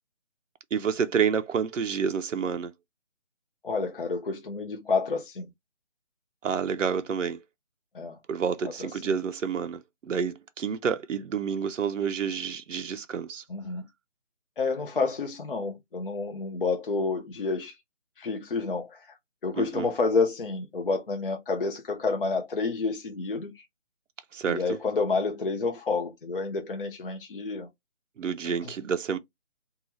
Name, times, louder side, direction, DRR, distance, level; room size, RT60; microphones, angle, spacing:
voice 1, 0.7-2.7 6.4-7.4 8.3-13.4 19.6-19.9 24.3-24.8 28.2-29.2, right 6 dB, 90° right, 0.5 m, -29 dB
voice 2, 3.6-5.5 7.9-8.2 13.5-13.8 14.6-17.8 18.2-19.0 19.4-23.5 24.5-27.7, left 4 dB, 50° left, 0.5 m, -29 dB
2.7 x 2.3 x 3.0 m
figure-of-eight pair, 160°, 37 cm